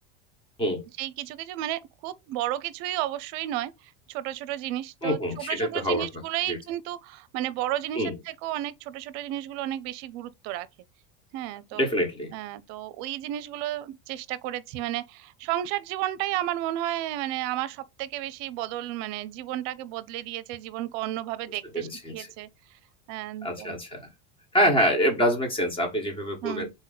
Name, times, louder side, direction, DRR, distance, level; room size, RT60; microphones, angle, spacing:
voice 1, 1.0-10.7 11.3-11.9 12.3-21.9 22.1-22.5 23.1-23.8 26.4-26.7, right 13 dB, 55° right, 0.6 m, -32 dB
voice 2, 5.0-6.1 6.5-6.6 7.9-8.1 11.7-12.3 21.7-22.3 23.4-24.1 24.5-26.7, equal, 15° left, 1.4 m, -26 dB
4.1 x 3.0 x 4.0 m
supercardioid pair, 150°, 31 cm